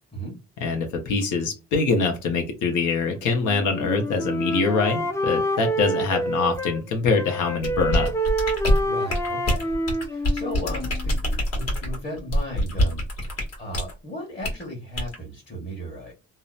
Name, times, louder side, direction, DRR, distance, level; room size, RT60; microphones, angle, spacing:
voice 1, 0.6-8.1, left 4 dB, 80° left, 3 dB, 0.8 m, -24 dB
Wind instrument woodwind instrument, 3.3-6.8 7.2-11.2, right 1 dB, 10° left, 0.4 m, -28 dB
sound 1, 7.6-13.9 14.4-14.6 15.0-15.2, equal, 55° left, 1.3 m, -24 dB
voice 2, 8.8-9.7 10.1-16.1, equal, 30° left, -3 dB, 1.2 m, -36 dB
2.7 x 2.1 x 2.3 m, 0.28 s
cardioid pair, 90°, 30 cm